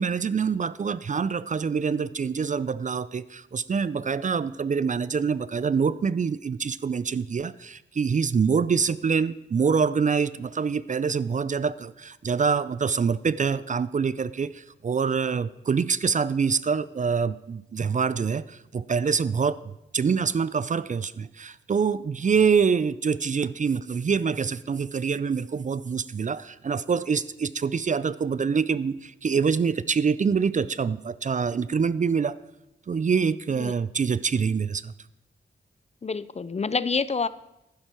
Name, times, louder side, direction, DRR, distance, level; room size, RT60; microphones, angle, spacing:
voice 1, 0.0-32.4 32.9-34.9, right 6 dB, 40° right, 18 dB, 0.4 m, -25 dB
voice 2, 36.0-37.3, left 4 dB, 35° left, 17 dB, 0.5 m, -27 dB
11.5 x 10.5 x 4.4 m, 0.90 s
cardioid pair, 55°, 20 cm